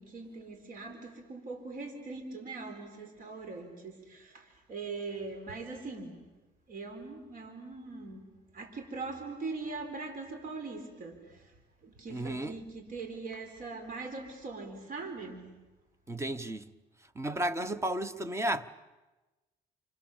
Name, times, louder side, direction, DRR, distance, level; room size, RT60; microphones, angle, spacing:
voice 1, 0.0-6.2 6.7-11.4 12.0-15.5, right 3 dB, 55° right, 4.3 m, -41 dB
voice 2, 12.1-12.6 16.1-16.7 17.1-18.7, right 1 dB, 15° right, 1.1 m, -33 dB
29.5 x 27.5 x 7.3 m
cardioid pair, 110°, 17 cm